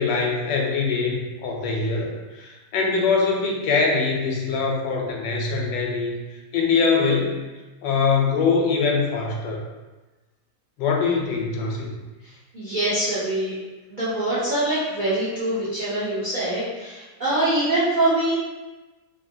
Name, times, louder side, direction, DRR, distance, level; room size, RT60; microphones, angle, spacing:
voice 1, 0.0-6.1 6.5-7.4 7.8-9.6 10.8-11.9, left 4 dB, 85° left, 0 dB, 1.2 m, -23 dB
voice 2, 12.5-13.6 13.9-18.3, right 1 dB, 60° right, -10 dB, 0.5 m, -24 dB
2.8 x 2.6 x 2.6 m, 1.2 s
omnidirectional pair, 1.8 m